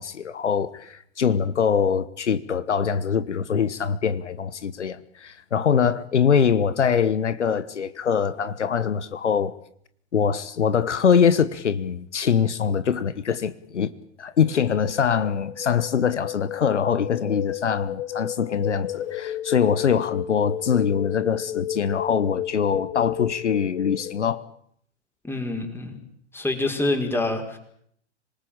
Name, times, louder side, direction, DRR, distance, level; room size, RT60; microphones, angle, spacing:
voice 1, 0.0-9.5 10.1-13.9 14.2-24.4, left 7 dB, 80° left, 1.4 m, -23 dB
sound 1, 14.4-24.3, left 11 dB, 50° left, 5.2 m, -33 dB
voice 2, 25.2-26.0 26.3-27.6, left 2 dB, 5° left, 5.0 m, -26 dB
26.5 x 18.5 x 8.9 m
figure-of-eight pair, 105°, 35 cm